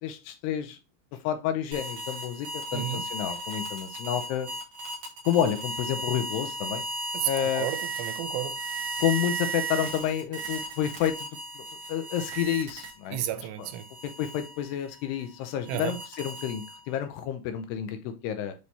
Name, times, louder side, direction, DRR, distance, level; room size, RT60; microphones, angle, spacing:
voice 1, 0.0-0.8 1.2-4.5 5.2-6.8 7.3-7.8 9.0-11.3 11.6-13.2 13.6-13.7 14.2-18.5, left 10 dB, 80° left, 2.5 m, -30 dB
sound 1, 1.7-13.2 13.6-17.0, right 2 dB, 60° right, 1.7 m, -35 dB
voice 2, 2.7-3.0 7.1-8.6 13.1-13.9 15.7-16.0, right 13 dB, 80° right, 2.6 m, -32 dB
8.5 x 3.2 x 4.0 m
omnidirectional pair, 5.2 m